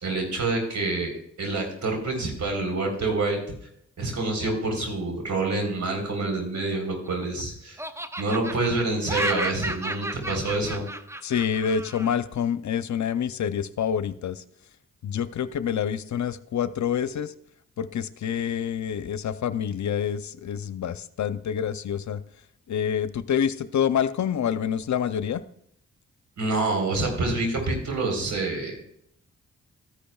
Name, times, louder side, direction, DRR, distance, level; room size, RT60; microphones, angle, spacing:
voice 1, 0.0-3.4 4.0-7.8 8.2-10.9 26.4-28.8, right 2 dB, 60° right, 2 dB, 3.9 m, -27 dB
Laughter, 6.6-7.4 7.8-12.2, right 1 dB, 10° right, 0.7 m, -33 dB
voice 2, 11.2-14.4 15.0-17.3 17.8-22.2 22.7-25.4, left 8 dB, 60° left, 13 dB, 0.6 m, -27 dB
13.5 x 10.0 x 2.3 m, 0.70 s
supercardioid pair, 45°, 32 cm